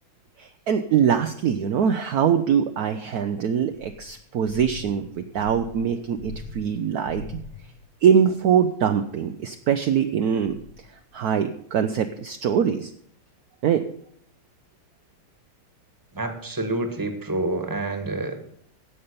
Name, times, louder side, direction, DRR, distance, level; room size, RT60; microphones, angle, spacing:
voice 1, 0.4-7.4 8.0-10.6 11.1-12.9 13.6-13.8, right 8 dB, 75° right, 7 dB, 0.8 m, -23 dB
sound 1, 3.7-7.9 10.4-11.1, left 3 dB, 70° left, 4.3 m, -41 dB
voice 2, 16.1-18.4, right 2 dB, 10° right, 6 dB, 1.2 m, -28 dB
15.5 x 5.6 x 6.7 m, 0.68 s
omnidirectional pair, 2.3 m